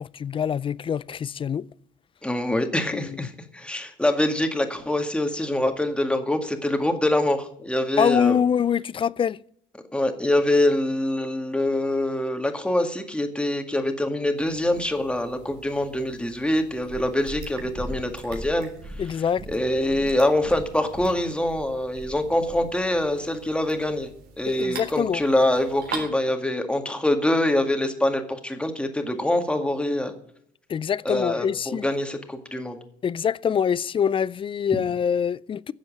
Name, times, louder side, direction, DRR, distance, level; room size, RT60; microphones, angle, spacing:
voice 1, 0.0-1.7 2.9-3.3 8.0-9.4 19.0-19.5 24.5-25.2 30.7-31.9 33.0-35.7, left 7 dB, 30° left, 0.4 m, -24 dB
voice 2, 2.2-8.3 9.9-18.7 19.5-24.1 24.4-30.1 31.1-32.8, left 1 dB, 5° left, 2.0 m, -24 dB
sound 1, 14.4-26.1, right 5 dB, 70° right, 3.6 m, -44 dB
Purr, 16.8-23.1 23.8-23.9, equal, 40° right, 4.1 m, -40 dB
11.5 x 7.6 x 9.0 m
cardioid pair, 110°, 17 cm